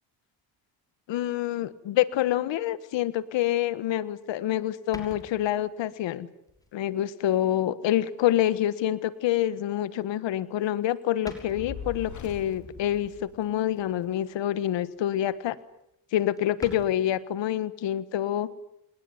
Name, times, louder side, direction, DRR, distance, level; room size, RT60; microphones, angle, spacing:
voice 1, 1.1-6.3 6.7-15.6 16.1-18.5, left 12 dB, 75° left, 16 dB, 1.6 m, -27 dB
sound 1, 4.9-5.8 6.5-6.7 7.2-7.3 8.6-8.7 10.3-10.7 11.0-11.1 11.2-11.9 13.8-14.3 14.7-14.9 15.3-15.4 15.6-15.7 15.9-16.0 16.4-16.9, left 1 dB, 10° left, 6.0 m, -45 dB
Fire, 11.5-13.9, left 5 dB, 40° left, 4.6 m, -41 dB
28.0 x 20.0 x 9.5 m, 0.80 s
cardioid pair, 95°, 44 cm